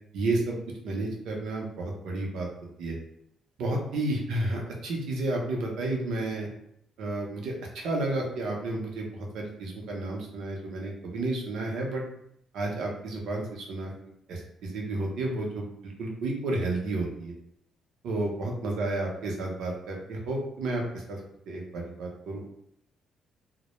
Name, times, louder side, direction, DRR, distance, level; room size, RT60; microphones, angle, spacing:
voice 1, 0.1-0.6 0.8-2.5 2.8-3.0 3.6-6.5 7.0-12.0 12.5-13.9 14.3-17.3 18.0-21.2 21.5-22.4, right 2 dB, 80° right, -1 dB, 0.6 m, -31 dB
2.1 x 2.0 x 2.9 m, 0.74 s
cardioid pair, 90°, 0 cm